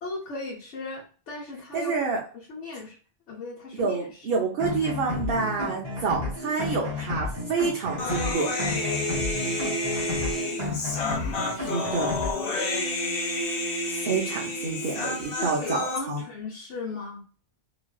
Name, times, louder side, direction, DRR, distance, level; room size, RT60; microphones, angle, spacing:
voice 1, 0.0-2.0 2.3-3.0 3.3-4.4 10.9-11.6 15.4-17.2, left 3 dB, 80° left, -4 dB, 1.0 m, -37 dB
voice 2, 1.7-2.2 3.8-8.5 11.5-12.1 13.9-16.2, right 4 dB, 60° right, -2 dB, 0.8 m, -28 dB
sound 1, 4.6-12.3, left 3 dB, 25° right, 0.9 m, -32 dB
Human voice, 8.0-16.0, left 2 dB, 60° left, 0.8 m, -29 dB
3.0 x 2.4 x 2.2 m, 0.39 s
omnidirectional pair, 1.2 m